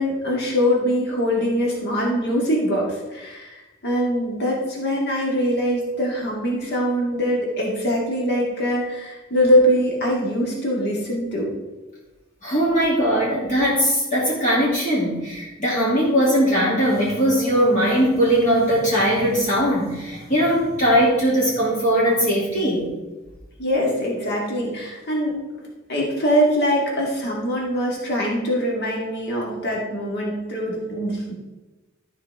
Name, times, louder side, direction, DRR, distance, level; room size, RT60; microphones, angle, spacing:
voice 1, 0.0-11.5 23.6-31.3, equal, 55° left, -3 dB, 2.4 m, -23 dB
voice 2, 12.4-22.9, equal, 40° left, -6 dB, 2.7 m, -20 dB
13.0 x 4.9 x 4.8 m, 1.1 s
head